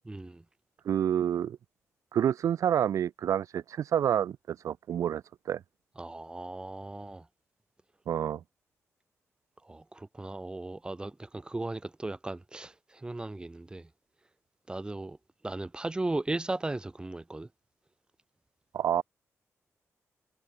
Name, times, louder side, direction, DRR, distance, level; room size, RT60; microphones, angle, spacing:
voice 1, 0.1-0.4 6.0-7.2 9.7-13.9 14.7-15.2 15.4-17.5, right 2 dB, 15° right, 2.5 m, -36 dB
voice 2, 0.8-1.6 2.1-5.2 5.5-5.6 8.1-8.4 18.7-19.0, right 9 dB, 80° right, 1.0 m, -28 dB
wide cardioid pair, 125°, 5 cm